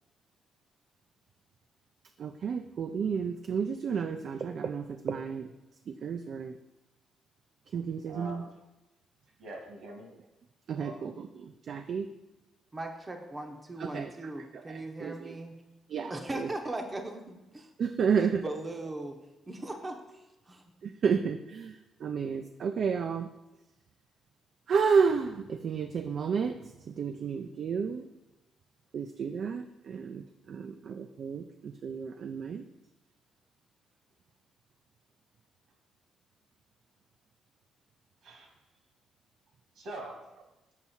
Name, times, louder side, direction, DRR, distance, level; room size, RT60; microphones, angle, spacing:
voice 1, 2.2-5.5 5.9-6.6 7.7-8.4 10.7-12.1 13.8-14.1 14.4-15.4 15.9-16.5 17.8-18.4 20.8-23.3 24.7-28.1 28.9-32.6, right 6 dB, 60° right, 7 dB, 0.3 m, -31 dB
voice 2, 8.1-8.5 9.4-10.1 10.8-11.0 38.2-38.5 39.8-40.2, right 2 dB, 75° right, 1 dB, 1.7 m, -43 dB
voice 3, 12.7-15.6 16.1-17.7 18.2-19.2 19.5-20.6, right 2 dB, 25° right, 3 dB, 0.8 m, -39 dB
7.2 x 4.6 x 4.2 m, 1.0 s
cardioid pair, 90°, 0 cm